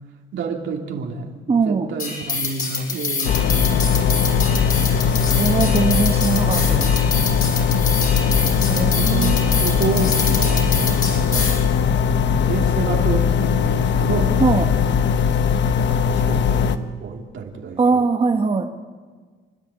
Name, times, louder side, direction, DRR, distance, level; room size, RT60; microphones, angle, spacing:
voice 1, 0.3-4.5 8.9-11.5 12.1-14.4 15.9-18.1, right 5 dB, 70° right, 1 dB, 3.0 m, -29 dB
voice 2, 1.5-1.9 4.4-4.5 5.3-6.9 8.7-9.6 11.4-11.5 14.4-14.6 17.8-18.6, right 4 dB, 30° right, 4 dB, 1.3 m, -21 dB
sound 1, 2.0-11.6, left 4 dB, 45° left, 6.6 m, -26 dB
sound 2, 3.2-16.8, left 7 dB, 65° left, 1.0 m, -19 dB
30.0 x 10.5 x 8.4 m, 1.5 s
cardioid pair, 90°, 20 cm